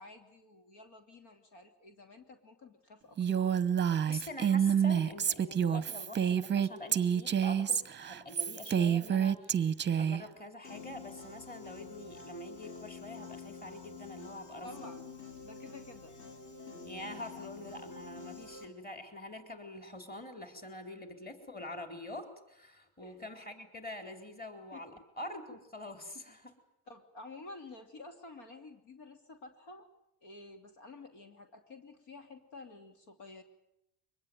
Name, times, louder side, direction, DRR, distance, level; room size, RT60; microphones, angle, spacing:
voice 1, 0.0-3.5 14.6-15.0 15.4-16.1 23.0-23.2 24.7-25.0 26.9-29.8 30.2-33.4, left 3 dB, 65° left, 6 dB, 3.0 m, -51 dB
Female speech woman speaking, 3.2-10.2, right 8 dB, 25° right, 0.9 m, -28 dB
voice 2, 4.1-9.7 10.0-14.7 16.8-26.5, left 1 dB, 20° left, 6 dB, 4.1 m, -45 dB
Piano, 10.6-18.7, left 4 dB, 45° left, 4.6 m, -48 dB
23.5 x 20.5 x 9.4 m, 0.82 s
cardioid pair, 115°, 44 cm